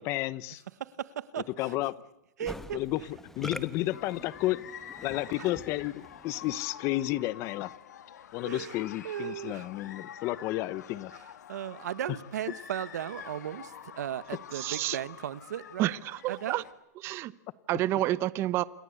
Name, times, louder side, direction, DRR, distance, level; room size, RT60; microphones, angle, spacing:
voice 1, 0.0-0.6 1.6-1.9 2.7-3.0 3.4-4.6 5.0-7.7 8.3-11.1, left 16 dB, 30° left, 1.0 m, -31 dB
voice 2, 0.8-1.8 2.4-2.8 5.4-5.5 8.4-8.8 9.0-9.7 11.1-11.2 11.5-15.9 16.3-16.6, right 10 dB, 80° right, 1.7 m, -36 dB
Musical instrument, 2.5-6.7, left 1 dB, 5° left, 1.3 m, -45 dB
sound 1, 3.9-16.7, left 9 dB, 85° left, 2.9 m, -47 dB
voice 3, 14.5-15.0 15.8-16.6 17.0-17.3 17.7-18.6, right 15 dB, 25° right, 0.9 m, -29 dB
28.0 x 23.5 x 8.4 m
supercardioid pair, 160°, 9 cm